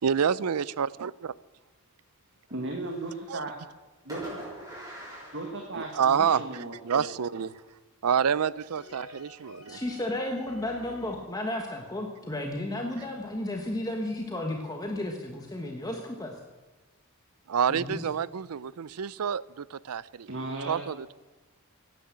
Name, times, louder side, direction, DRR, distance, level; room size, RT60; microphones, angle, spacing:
voice 1, 0.0-1.3 3.3-3.4 5.8-7.5 8.0-9.8 17.5-20.3 20.7-21.1, right 7 dB, 90° right, 0.5 m, -28 dB
Fireworks, 2.5-3.5 4.1-6.3, right 1 dB, 15° right, 5.7 m, -44 dB
voice 2, 2.5-3.5 4.0-4.4 5.3-7.5 20.3-20.9, right 2 dB, 55° right, 1.7 m, -36 dB
sound 1, 5.0-6.7 8.8-11.2, left 1 dB, 65° left, 2.2 m, -51 dB
voice 3, 9.7-16.3 17.7-18.0, left 1 dB, 15° left, 1.4 m, -33 dB
16.5 x 10.5 x 7.5 m
head